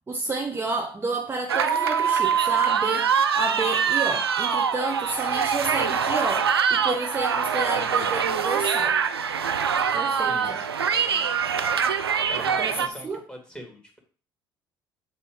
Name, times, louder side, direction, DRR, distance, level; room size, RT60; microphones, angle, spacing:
voice 1, 0.1-9.0 9.9-10.6 11.6-11.7 12.4-13.2, right 3 dB, 20° right, 0.7 m, -31 dB
sound 1, 1.5-12.9, right 7 dB, 80° right, 0.4 m, -24 dB
voice 2, 10.2-11.5 12.3-14.0, left 1 dB, 5° left, 2.3 m, -43 dB
7.4 x 2.7 x 5.0 m
figure-of-eight pair, 50°, 13 cm